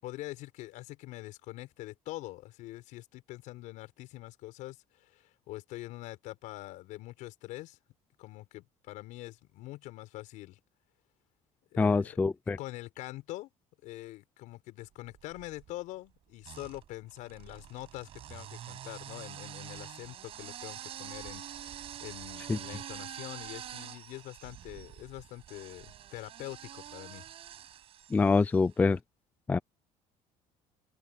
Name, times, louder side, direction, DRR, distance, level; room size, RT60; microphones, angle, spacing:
voice 1, 0.0-7.8 8.2-10.6 11.7-12.2 12.6-13.5 13.8-27.2, left 17 dB, 70° left, 5.3 m, -44 dB
voice 2, 11.8-12.6 22.5-22.6 28.1-29.0 29.5-29.6, left 4 dB, 10° left, 0.3 m, -25 dB
sound 1, 15.0-15.7 16.4-28.7, right 11 dB, 45° right, 6.2 m, -46 dB
open air
cardioid pair, 160°, 14 cm